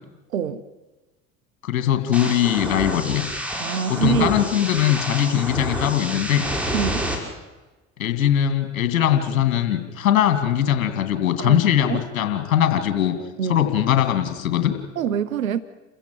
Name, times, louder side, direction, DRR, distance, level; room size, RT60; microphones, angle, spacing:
voice 1, 0.3-0.7 3.6-4.4 6.7-7.1 11.4-11.6 11.9-12.0 13.4-13.7 15.0-15.6, right 8 dB, 85° right, 15 dB, 0.9 m, -25 dB
voice 2, 1.6-3.3 3.9-6.5 8.0-13.1 13.5-14.8, left 10 dB, 75° left, 8 dB, 2.7 m, -21 dB
sound 1, 2.1-7.2, equal, 5° right, 5.6 m, -28 dB
28.5 x 16.0 x 7.8 m, 1.2 s
hypercardioid pair, 75°, 40 cm